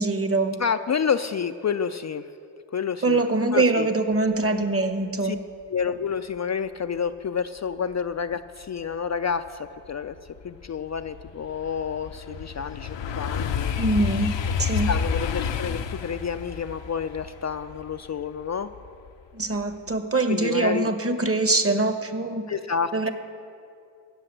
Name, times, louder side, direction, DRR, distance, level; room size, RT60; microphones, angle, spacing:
voice 1, 0.0-0.6 3.0-5.4 13.8-14.9 19.3-22.5 22.9-23.1, right 2 dB, 30° right, 8 dB, 1.1 m, -23 dB
voice 2, 0.6-2.3 2.7-3.2 3.5-3.9 5.2-5.4 5.7-13.7 14.9-18.7 20.3-20.9 22.5-23.1, left 6 dB, 40° left, 9 dB, 0.4 m, -29 dB
sound 1, 9.5-9.6 10.0-19.1 19.5-19.9, left 6 dB, 75° left, 0.7 m, -30 dB
16.0 x 5.7 x 7.5 m, 2.5 s
cardioid pair, 40°, 44 cm